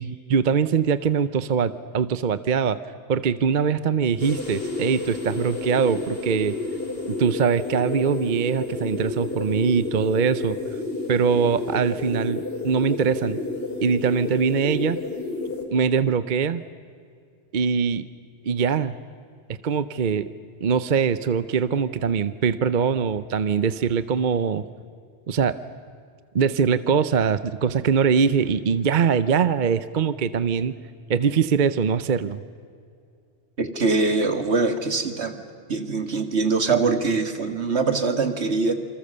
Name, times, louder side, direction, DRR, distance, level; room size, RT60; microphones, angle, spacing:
voice 1, 0.0-2.8 3.1-6.6 7.1-10.6 11.1-13.4 13.8-15.0 15.7-16.6 17.5-18.1 18.4-19.0 19.5-20.3 20.6-24.7 25.3-25.6 26.3-30.8 31.1-32.4, right 6 dB, 50° right, 14 dB, 0.8 m, -22 dB
sound 1, 4.2-15.6, left 3 dB, 60° left, 3.5 m, -30 dB
voice 2, 33.6-35.4 35.7-38.7, right 4 dB, 75° right, 8 dB, 2.2 m, -23 dB
27.5 x 26.0 x 6.8 m, 2.3 s
omnidirectional pair, 1.1 m